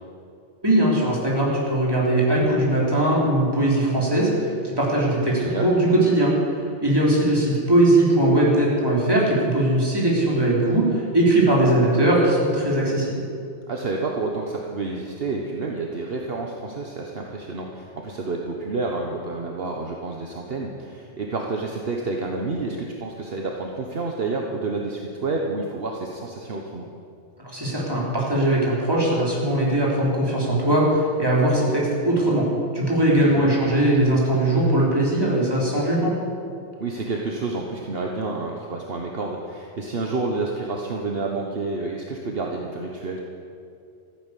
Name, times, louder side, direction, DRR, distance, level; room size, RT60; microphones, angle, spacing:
voice 1, 0.6-6.3 6.8-13.2 27.4-32.5 32.7-36.1, right 1 dB, 20° right, -5 dB, 3.7 m, -20 dB
voice 2, 5.4-5.7 13.7-26.9 33.2-33.5 36.8-43.2, right 3 dB, 55° right, 1 dB, 1.4 m, -29 dB
14.5 x 10.0 x 8.3 m, 2.5 s
omnidirectional pair, 1.2 m